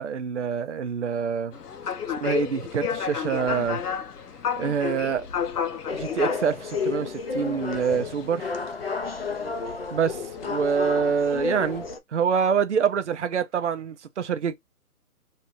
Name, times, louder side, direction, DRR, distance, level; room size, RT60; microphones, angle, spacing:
voice 1, 0.0-1.5 2.2-3.8 4.6-5.3 5.9-8.5 9.9-11.8 12.1-14.5, right 6 dB, 55° right, 0.5 m, -26 dB
sound 1, 1.5-11.9, left 7 dB, 90° left, 0.8 m, -33 dB
sound 2, 5.9-12.0, left 4 dB, 45° left, 0.5 m, -31 dB
3.3 x 2.8 x 2.8 m
hypercardioid pair, 170°, 45 cm